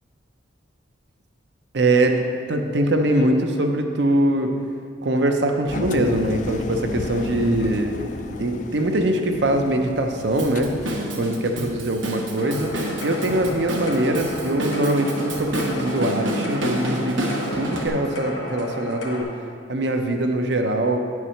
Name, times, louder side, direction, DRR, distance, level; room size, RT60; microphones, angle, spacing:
voice 1, 1.7-2.2 2.5-4.5 5.0-8.0 8.4-10.7 11.2-12.7 13.0-19.3 19.7-21.0, right 1 dB, 65° right, 4 dB, 0.7 m, -22 dB
Engine, 5.7-11.5, left 3 dB, 40° left, 0.3 m, -33 dB
Drum kit / Drum, 10.4-17.9, right 1 dB, 85° right, 1.1 m, -29 dB
sound 1, 12.4-19.2, left 1 dB, 70° left, 1.2 m, -34 dB
8.9 x 4.7 x 5.6 m, 2.2 s
head